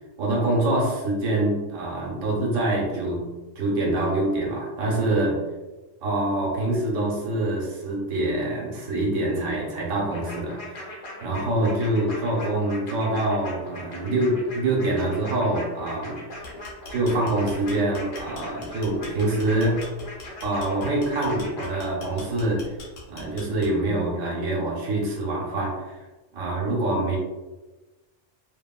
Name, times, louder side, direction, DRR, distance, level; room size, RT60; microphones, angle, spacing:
voice 1, 0.2-3.3 3.6-5.4 6.0-16.2 16.9-19.9 20.4-22.8 23.1-26.1 26.3-27.2, right 2 dB, 80° right, -2 dB, 1.1 m, -25 dB
sound 1, 10.1-21.8, left 1 dB, 45° left, 0.7 m, -39 dB
sound 2, 16.3-24.0, left 2 dB, 85° left, 1.2 m, -43 dB
2.9 x 2.4 x 2.2 m, 1.1 s
omnidirectional pair, 1.3 m